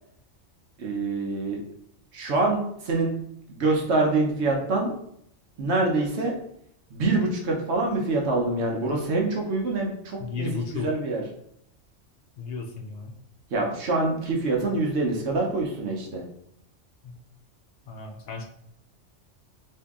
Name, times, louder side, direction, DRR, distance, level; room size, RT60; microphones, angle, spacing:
voice 1, 0.8-1.6 2.1-3.2 3.5-4.9 5.6-6.3 6.9-11.2 13.5-16.2, right 2 dB, 65° right, 0 dB, 0.9 m, -25 dB
voice 2, 10.2-10.9 12.4-13.2 17.0-17.1 17.9-18.4, left 5 dB, 65° left, 3 dB, 0.7 m, -34 dB
2.8 x 2.6 x 3.5 m, 0.72 s
omnidirectional pair, 1.3 m